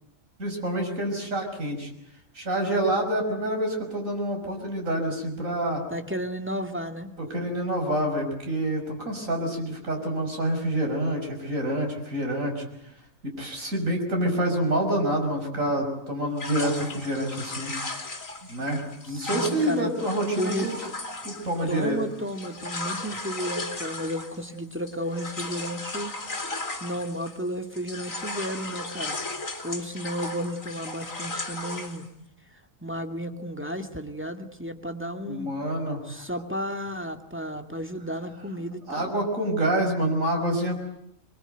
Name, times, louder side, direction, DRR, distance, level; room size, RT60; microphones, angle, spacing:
voice 1, 0.4-1.9 2.3-5.8 7.2-12.7 13.2-17.7 18.5-20.8 21.2-22.0 35.3-36.2 38.9-40.8, right 1 dB, 80° right, 2 dB, 6.4 m, -27 dB
voice 2, 5.9-7.1 19.1-20.0 20.4-20.9 21.7-26.1 26.8-29.2 29.6-32.0 32.8-35.5 36.1-39.2, equal, 10° right, 6 dB, 2.1 m, -33 dB
sound 1, 16.4-27.5 27.7-32.1, left 2 dB, 85° left, 3.4 m, -36 dB
25.0 x 23.0 x 9.2 m, 0.77 s
omnidirectional pair, 1.4 m